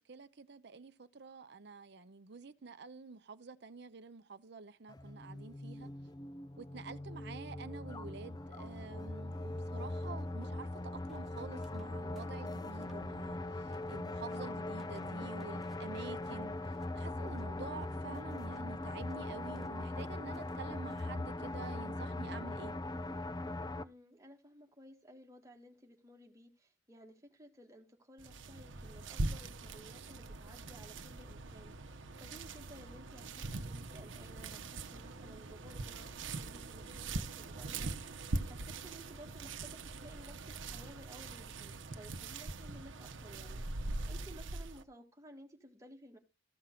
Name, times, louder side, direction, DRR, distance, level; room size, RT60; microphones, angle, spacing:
voice 1, 0.0-5.9 6.6-10.7 11.1-16.5 16.9-22.7, right 4 dB, 60° right, 0.7 m, -49 dB
sound 1, 4.9-23.8, left 2 dB, 20° left, 0.4 m, -41 dB
sound 2, 11.1-11.9 12.2-13.1 13.3-14.0 14.3-21.0, equal, ahead, 1.3 m, -62 dB
voice 2, 23.8-46.2, equal, 15° right, 1.7 m, -56 dB
sound 3, 28.2-44.8, right 2 dB, 80° right, 0.9 m, -42 dB
14.0 x 5.9 x 3.8 m
head